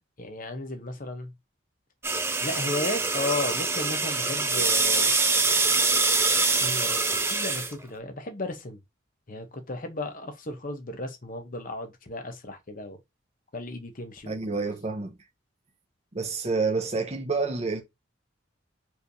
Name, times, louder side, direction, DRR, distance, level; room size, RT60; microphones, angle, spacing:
voice 1, 0.2-1.3 2.4-5.2 6.6-8.8 9.3-13.0 13.5-14.7, left 2 dB, 40° left, 0.9 m, -34 dB
sound 1, 2.0-7.7, right 3 dB, 10° right, 0.4 m, -24 dB
voice 2, 14.3-15.1 16.1-17.8, right 4 dB, 30° right, 0.8 m, -28 dB
4.6 x 3.3 x 2.7 m
head